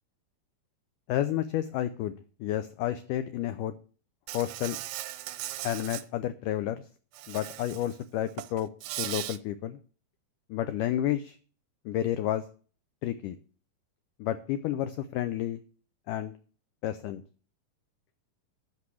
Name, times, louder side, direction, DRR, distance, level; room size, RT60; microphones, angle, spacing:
voice 1, 1.1-2.2 2.4-3.7 4.3-4.8 5.6-6.8 7.3-8.7 9.0-9.8 10.5-11.4 11.9-12.4 13.0-13.4 14.2-15.6 16.1-16.3 16.8-17.2, left 12 dB, 85° left, 11 dB, 1.8 m, -30 dB
Insect, 4.3-6.0 7.1-8.0 8.3-9.4, right 15 dB, 80° right, 2.0 m, -38 dB
13.0 x 4.7 x 8.3 m, 0.41 s
omnidirectional pair, 4.4 m